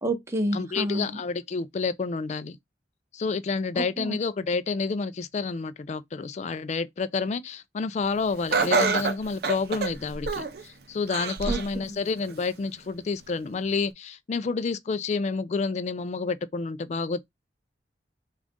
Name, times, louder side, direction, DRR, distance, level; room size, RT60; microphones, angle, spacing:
voice 1, 0.0-1.2 3.8-4.2 11.5-12.0, right 1 dB, 15° right, 0.7 m, -29 dB
voice 2, 0.5-2.6 3.1-17.2, left 4 dB, 40° left, 0.3 m, -29 dB
Laughter, 8.5-10.6 11.1-11.7 12.2-12.3 13.3-13.4, right 4 dB, 60° right, 0.6 m, -26 dB
3.7 x 2.4 x 3.5 m
head